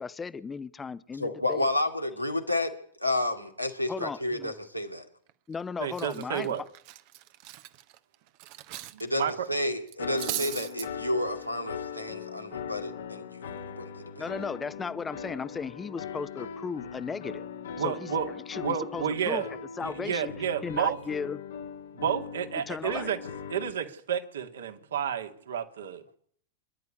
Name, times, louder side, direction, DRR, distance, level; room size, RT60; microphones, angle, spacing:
voice 1, 0.0-1.6 3.9-4.5 5.5-6.7 14.2-17.5 17.8-18.1 18.5-20.3 20.6-21.4 22.7-23.1, left 5 dB, 15° left, 15 dB, 0.9 m, -36 dB
voice 2, 1.2-2.7 3.0-5.1 9.0-13.9, left 1 dB, 90° left, 4 dB, 2.4 m, -31 dB
Cutlery silverware, 5.3-5.6 5.9-9.0 9.3-9.5 9.9-10.9, right 15 dB, 45° right, 1.1 m, -38 dB
voice 3, 5.8-6.6 8.9-9.5 17.8-18.3 18.6-19.5 19.8-21.0 21.9-23.2 23.5-26.2, right 8 dB, 65° right, 7 dB, 2.1 m, -31 dB
sound 1, 10.0-23.7, left 7 dB, 65° left, 1.7 m, -40 dB
26.5 x 11.0 x 9.8 m, 0.62 s
figure-of-eight pair, 90°, 0 cm